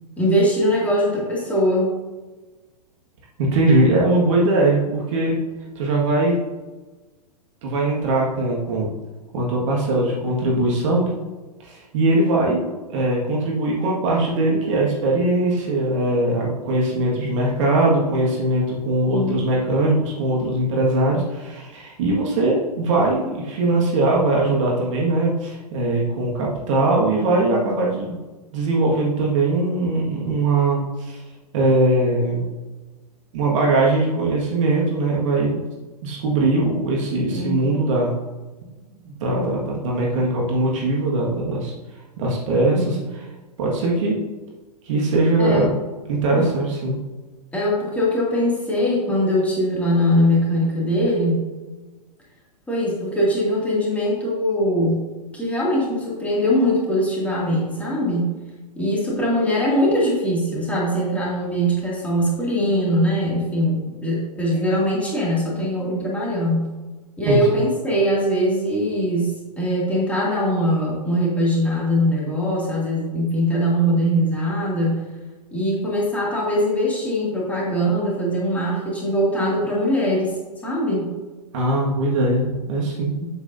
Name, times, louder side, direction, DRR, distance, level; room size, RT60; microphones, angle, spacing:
voice 1, 0.2-1.9 19.1-19.4 37.3-37.7 42.7-42.9 45.4-45.7 46.3-46.5 47.5-51.5 52.7-55.0 55.3-58.3 58.8-66.6 67.2-75.0 75.5-80.3 80.6-81.1 83.2-83.3, equal, 5° left, -5 dB, 2.4 m, -21 dB
voice 2, 3.4-5.4 5.8-6.4 7.6-8.9 9.3-11.0 11.6-12.6 12.9-28.1 28.5-31.2 31.5-32.4 33.3-35.6 36.0-38.1 39.1-41.7 42.2-43.0 43.6-44.1 44.8-45.8 46.1-47.0 67.3-67.4 81.5-83.1, right 2 dB, 50° right, -2 dB, 1.8 m, -21 dB
8.2 x 7.8 x 2.7 m, 1.2 s
figure-of-eight pair, 105°, 21 cm